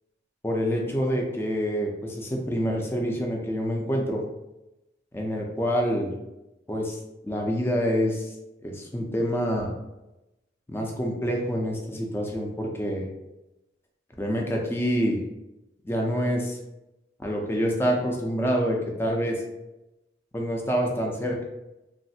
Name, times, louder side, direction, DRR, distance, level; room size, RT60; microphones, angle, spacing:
voice 1, 0.4-4.2 5.1-6.1 6.7-7.0 7.2-8.3 8.6-9.7 10.7-13.1 14.2-15.2 15.8-16.6 17.2-19.4 20.3-21.4, equal, 15° left, 0 dB, 0.5 m, -27 dB
3.1 x 2.4 x 2.7 m, 0.95 s
head